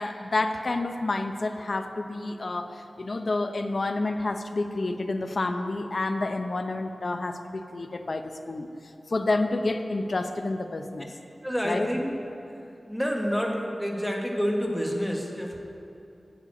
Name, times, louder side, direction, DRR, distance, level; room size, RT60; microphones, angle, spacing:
voice 1, 0.0-8.7 9.1-11.1 11.6-11.9, left 2 dB, 60° left, 7 dB, 0.7 m, -29 dB
voice 2, 11.4-12.1 12.5-15.6, equal, 5° left, 0 dB, 1.4 m, -28 dB
8.8 x 6.8 x 8.5 m, 2.9 s
wide cardioid pair, 65°, 0 cm